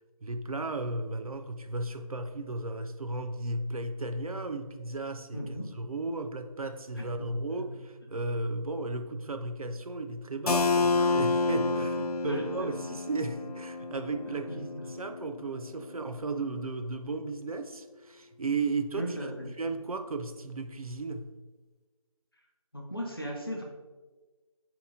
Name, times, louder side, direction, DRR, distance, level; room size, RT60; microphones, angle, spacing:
voice 1, 0.2-19.3 19.6-21.3, right 3 dB, 75° right, 7 dB, 0.4 m, -35 dB
voice 2, 5.3-5.7 7.0-7.7 11.6-11.9 12.2-12.9 14.3-14.8 19.0-19.5 22.7-23.6, equal, 40° left, 0 dB, 0.7 m, -38 dB
Keyboard (musical), 10.5-16.0, left 4 dB, 90° left, 0.4 m, -30 dB
4.2 x 2.9 x 3.6 m, 1.3 s
figure-of-eight pair, 180°, 19 cm